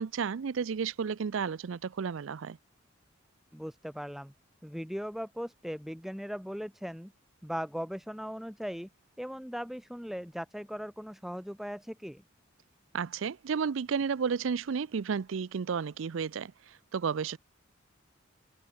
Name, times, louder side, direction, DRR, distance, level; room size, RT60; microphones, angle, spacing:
voice 1, 0.0-2.6 12.9-17.4, right 6 dB, 70° right, 0.4 m, -32 dB
voice 2, 3.5-4.3 4.6-7.1 7.4-8.9 9.2-12.2, equal, ahead, 1.6 m, -38 dB
head